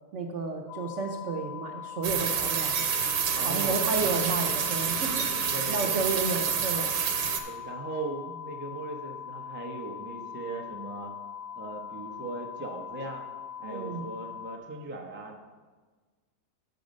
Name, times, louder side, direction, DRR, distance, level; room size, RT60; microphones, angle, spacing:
voice 1, 0.1-2.7 3.4-5.3 5.7-6.9 13.6-14.0, right 3 dB, 60° right, 1 dB, 0.9 m, -32 dB
sound 1, 0.7-14.6, left 8 dB, 65° left, 0.9 m, -41 dB
sound 2, 2.0-7.4, right 7 dB, 75° right, 1.3 m, -28 dB
voice 2, 3.3-4.1 5.5-5.9 7.3-11.1 11.5-13.2 13.6-15.4, right 2 dB, 15° right, 1 dB, 0.5 m, -39 dB
7.9 x 6.3 x 5.2 m, 1.4 s
omnidirectional pair, 1.7 m